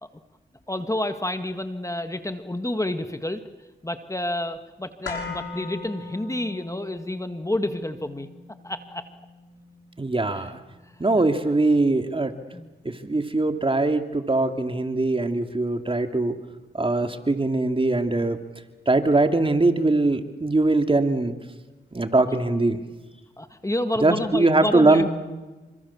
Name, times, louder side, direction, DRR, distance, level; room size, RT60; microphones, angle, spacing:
voice 1, 0.7-3.4 3.8-8.3 8.6-9.0 10.3-10.5 11.1-11.3 12.5-12.7 23.4-25.1, left 1 dB, 15° left, 8 dB, 1.9 m, -29 dB
sound 1, 5.0-13.1 13.4-13.5, left 4 dB, 85° left, 6.5 m, -41 dB
voice 2, 10.0-10.6 11.0-12.3 12.8-16.4 16.7-18.4 18.9-21.3 21.9-22.8 24.0-25.1, right 2 dB, 25° right, 7 dB, 2.5 m, -21 dB
28.0 x 25.5 x 7.3 m, 1.2 s
cardioid pair, 60°, 20 cm